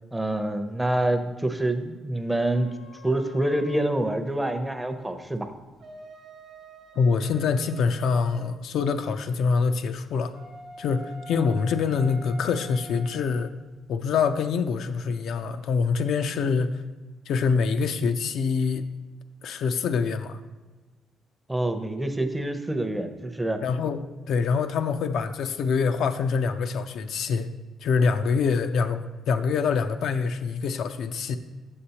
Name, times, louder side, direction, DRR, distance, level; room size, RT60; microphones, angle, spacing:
voice 1, 0.1-2.7 3.0-5.5 21.5-23.6, right 1 dB, 10° right, 7 dB, 0.6 m, -26 dB
sound 1, 2.5-4.0 5.6-8.5 10.3-13.4, equal, 75° right, 0.9 m, -46 dB
voice 2, 7.0-10.3 10.8-13.5 13.9-16.8 17.3-18.9 19.4-20.4 23.6-27.5 27.8-31.4, left 5 dB, 75° left, 8 dB, 0.4 m, -25 dB
7.4 x 6.7 x 2.8 m, 1.2 s
cardioid pair, 90°, 0 cm